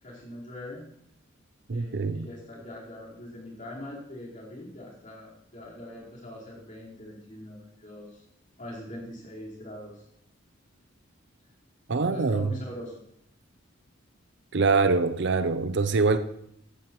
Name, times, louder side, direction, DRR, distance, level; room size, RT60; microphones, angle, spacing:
voice 1, 0.0-0.8 1.7-8.2 8.6-10.1 12.0-13.0, left 1 dB, 40° left, 4.3 m, -42 dB
voice 2, 1.7-2.3 11.9-12.4 14.5-16.2, right 4 dB, 55° right, 0.6 m, -24 dB
14.5 x 13.0 x 3.1 m
head